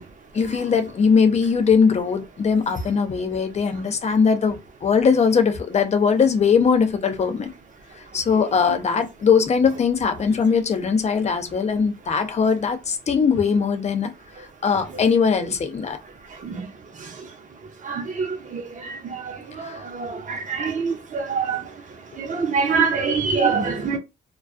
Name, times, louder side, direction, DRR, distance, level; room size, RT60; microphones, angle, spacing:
voice 1, 0.3-7.5 8.1-14.1 14.6-16.0 19.6-19.8, left 6 dB, 35° left, 0.5 m, -20 dB
voice 2, 17.9-18.3 18.5-18.6 19.9-21.6 22.3-24.0, right 5 dB, 40° right, 0.8 m, -23 dB
2.3 x 2.2 x 2.5 m
cardioid pair, 90°, 20 cm